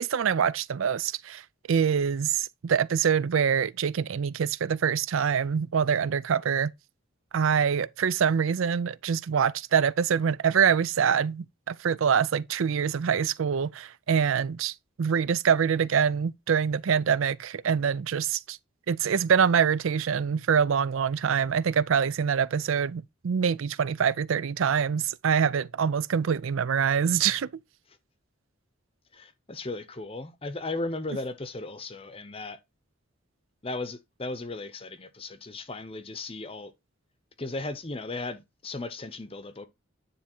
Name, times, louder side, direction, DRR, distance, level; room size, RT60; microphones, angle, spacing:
voice 1, 0.0-6.7 7.3-18.6 18.9-27.5, right 7 dB, 75° right, 0.4 m, -25 dB
voice 2, 29.1-32.6 33.6-36.7 37.4-39.7, left 2 dB, 25° left, 0.7 m, -36 dB
9.8 x 3.5 x 4.3 m
head